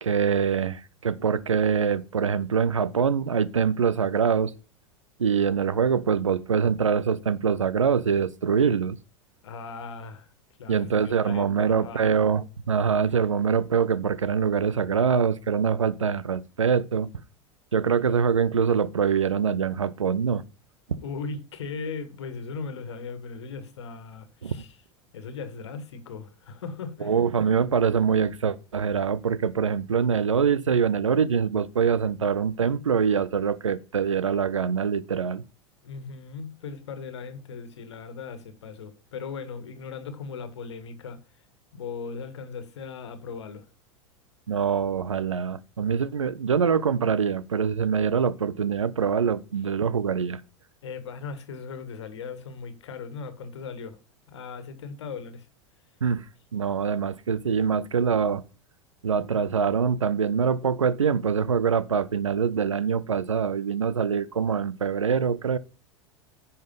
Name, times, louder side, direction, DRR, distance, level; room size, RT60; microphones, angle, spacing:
voice 1, 0.0-4.5 5.2-9.0 10.7-17.1 17.7-20.4 20.9-21.0 24.4-24.5 27.0-35.4 44.5-50.4 56.0-56.2 56.5-58.4 59.0-65.6, right 6 dB, 75° right, 0.6 m, -24 dB
voice 2, 9.4-10.3 10.6-12.1 21.0-24.8 25.1-27.2 35.8-41.2 41.7-43.7 50.8-54.0 54.3-55.5, left 5 dB, 60° left, 1.6 m, -38 dB
10.5 x 5.6 x 5.3 m
figure-of-eight pair, 85°, 16 cm